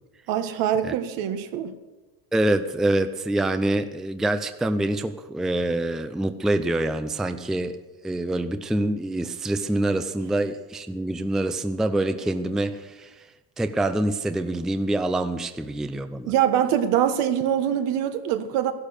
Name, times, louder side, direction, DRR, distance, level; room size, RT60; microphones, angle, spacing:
voice 1, 0.3-1.7 16.3-18.7, right 10 dB, 70° right, 8 dB, 1.6 m, -23 dB
voice 2, 2.3-7.8 8.0-13.3 13.6-16.3, right 1 dB, ahead, 10 dB, 0.5 m, -25 dB
15.0 x 11.5 x 6.6 m, 1.2 s
cardioid pair, 125°, 44 cm